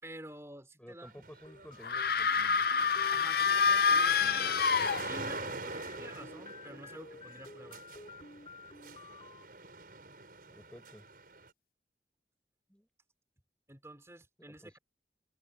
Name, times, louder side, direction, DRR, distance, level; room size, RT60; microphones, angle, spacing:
voice 1, 0.0-1.3 3.1-4.6 5.0-7.8 13.7-14.8, right 1 dB, 15° right, 4.3 m, -50 dB
voice 2, 0.8-2.7 10.5-11.0 12.7-12.9 14.6-14.8, equal, 5° left, 4.2 m, -53 dB
sound 1, 1.0-11.5, right 3 dB, 55° right, 7.1 m, -45 dB
sound 2, 1.4-9.5, left 3 dB, 30° left, 4.8 m, -52 dB
sound 3, 1.8-5.5, left 6 dB, 55° left, 0.5 m, -27 dB
head